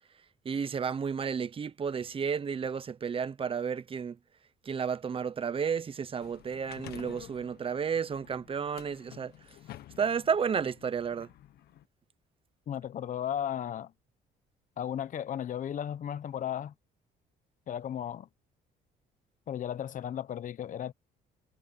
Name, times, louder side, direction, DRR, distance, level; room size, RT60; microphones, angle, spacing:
voice 1, 0.4-4.2 4.6-9.3 10.0-11.3, right 6 dB, 35° right, 1.0 m, -32 dB
sound 1, 6.2-11.9, left 13 dB, 70° left, 1.4 m, -51 dB
voice 2, 12.7-13.9 14.8-16.7 17.7-18.3 19.5-20.9, left 10 dB, 50° left, 1.1 m, -35 dB
cardioid pair, 110°, 17 cm